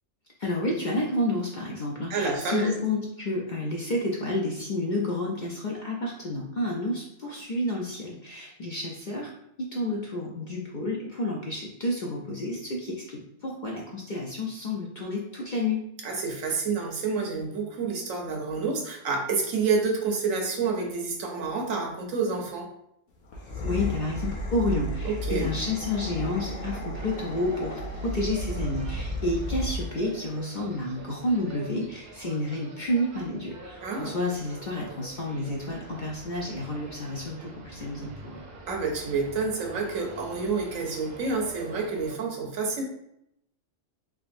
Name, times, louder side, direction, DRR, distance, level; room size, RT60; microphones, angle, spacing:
voice 1, 0.4-9.3 9.6-15.9 23.6-38.4, left 1 dB, 55° left, -2 dB, 0.5 m, -30 dB
voice 2, 2.1-2.7 16.0-22.7 25.0-25.5 33.8-34.1 38.7-42.8, right 4 dB, 85° right, 1 dB, 1.2 m, -28 dB
sound 1, 23.2-30.0, left 1 dB, 90° left, 1.2 m, -33 dB
sound 2, 26.9-42.2, right 2 dB, 60° right, 0.8 m, -46 dB
3.6 x 3.3 x 2.5 m, 0.77 s
omnidirectional pair, 1.3 m